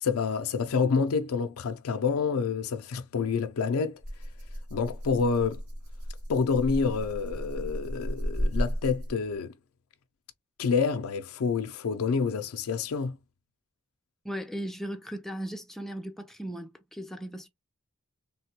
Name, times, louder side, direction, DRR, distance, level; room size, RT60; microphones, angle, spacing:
voice 1, 0.0-4.0 4.7-5.6 6.3-9.5 10.6-13.2, left 5 dB, 75° left, 0.4 m, -28 dB
Rattle (instrument), 4.0-9.4, equal, 85° right, 1.4 m, -34 dB
voice 2, 14.2-17.5, right 1 dB, ahead, 0.4 m, -37 dB
3.4 x 2.2 x 2.7 m
head